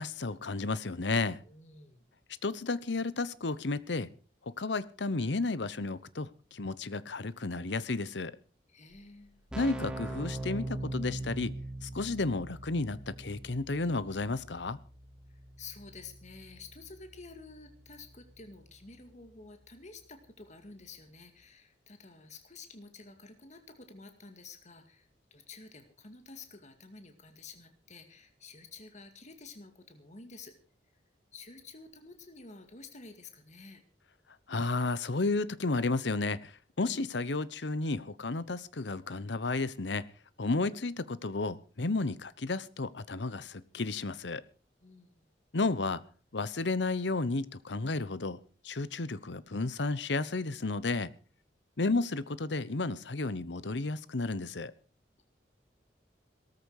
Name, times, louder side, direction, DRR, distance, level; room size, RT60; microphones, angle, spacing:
voice 1, 0.0-1.4 2.4-4.1 4.5-8.4 9.6-11.5 11.8-14.8 34.5-36.5 36.8-40.0 40.4-44.4 45.5-46.0 46.3-48.4 48.6-51.1 51.8-54.7, left 3 dB, 80° left, 17 dB, 1.0 m, -32 dB
voice 2, 1.4-2.0 8.7-9.4 15.6-30.5 31.3-33.8 36.8-37.1 44.8-45.3, left 4 dB, 40° left, 7 dB, 2.2 m, -51 dB
Keyboard (musical), 8.9-9.0 9.2-19.8, right 1 dB, 5° right, 2.8 m, -43 dB
17.5 x 14.0 x 4.8 m, 0.37 s
head